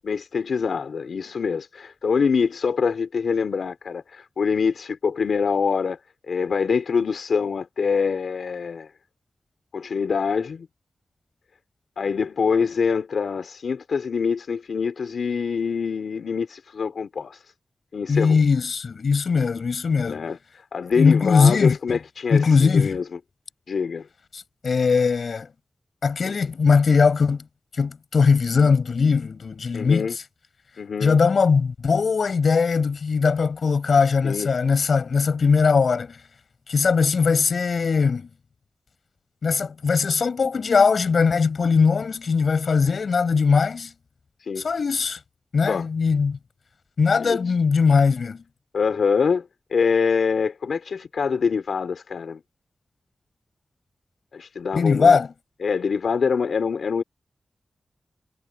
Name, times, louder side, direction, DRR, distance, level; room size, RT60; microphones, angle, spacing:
voice 1, 0.0-6.0 6.3-8.9 9.7-10.7 12.0-17.4 17.9-18.4 20.1-20.4 20.7-23.0 23.7-24.0 29.7-30.2 30.8-31.2 34.2-34.5 44.5-44.6 45.7-45.9 47.2-47.4 48.7-49.5 49.7-52.4 54.3-55.2 55.6-57.0, left 5 dB, 90° left, 3.6 m, -24 dB
voice 2, 18.1-20.3 21.0-22.0 22.3-23.0 24.3-25.5 26.0-27.4 27.8-30.1 31.0-36.2 36.7-38.3 39.4-43.9 44.6-45.2 45.5-46.4 47.0-48.4 54.7-55.3, left 5 dB, 65° left, 4.8 m, -20 dB
wide cardioid pair, 145°, 0 cm